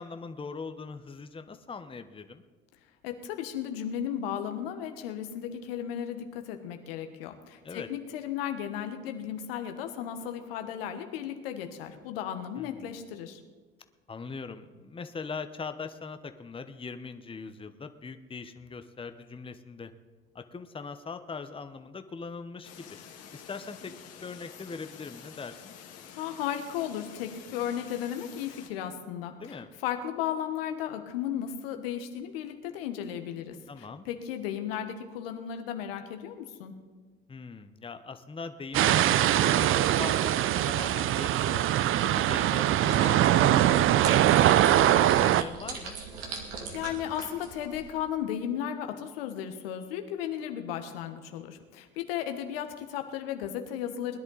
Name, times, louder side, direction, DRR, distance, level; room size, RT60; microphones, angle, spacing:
voice 1, 0.0-2.4 7.6-7.9 12.6-12.7 14.1-19.9 20.3-23.0 23.3-23.9 24.2-25.7 29.4-29.7 33.7-34.0 37.3-40.4 40.7-41.6 42.0-46.0, left 4 dB, 20° left, 9 dB, 0.9 m, -41 dB
voice 2, 3.0-13.4 26.2-36.7 46.3-46.4 46.7-54.2, left 9 dB, 75° left, 7 dB, 1.4 m, -35 dB
sound 1, 22.6-28.7, left 8 dB, 55° left, 1.9 m, -49 dB
sound 2, 38.7-45.4, right 12 dB, 45° right, 0.6 m, -22 dB
sound 3, 42.8-47.9, right 4 dB, 75° right, 2.5 m, -41 dB
20.5 x 11.0 x 4.0 m, 1.4 s
hypercardioid pair, 65°, 29 cm